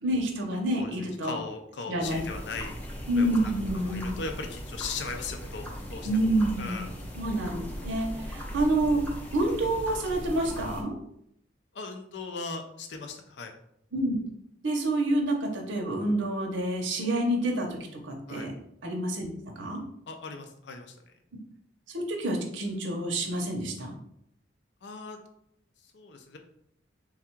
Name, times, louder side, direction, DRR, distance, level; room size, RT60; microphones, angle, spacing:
voice 1, 0.0-1.4 1.9-2.2 3.1-4.1 6.0-6.8 7.2-9.0 9.3-11.0 13.9-14.2 14.6-17.7 18.0-18.5 18.8-19.3 19.6-19.8 21.9-24.0, right 1 dB, 85° right, 1 dB, 0.8 m, -28 dB
voice 2, 1.2-2.8 3.1-6.1 6.6-6.9 11.7-13.5 18.3-18.5 20.1-21.0 24.8-25.2 25.9-26.4, left 4 dB, 65° left, 4 dB, 0.5 m, -38 dB
sound 1, 2.0-10.8, equal, 10° left, 0.6 m, -39 dB
3.5 x 2.3 x 4.4 m, 0.73 s
head